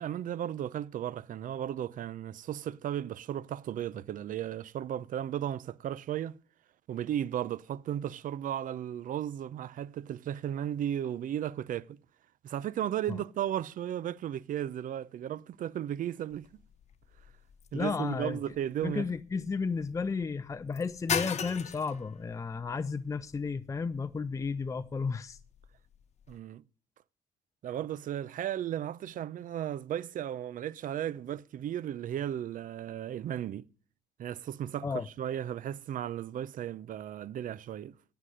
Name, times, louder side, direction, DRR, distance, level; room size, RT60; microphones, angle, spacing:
voice 1, 0.0-6.4 6.9-12.0 12.4-16.5 17.7-19.1 26.3-26.6 27.6-33.7 34.2-34.9 35.2-38.0, right 10 dB, 55° right, 0.6 m, -35 dB
sound 1, 16.3-26.4, left 7 dB, 40° left, 1.4 m, -41 dB
voice 2, 17.7-18.4 18.8-25.4 34.8-35.1, left 5 dB, 20° left, 0.6 m, -33 dB
17.5 x 7.0 x 6.3 m
cardioid pair, 110°, 17 cm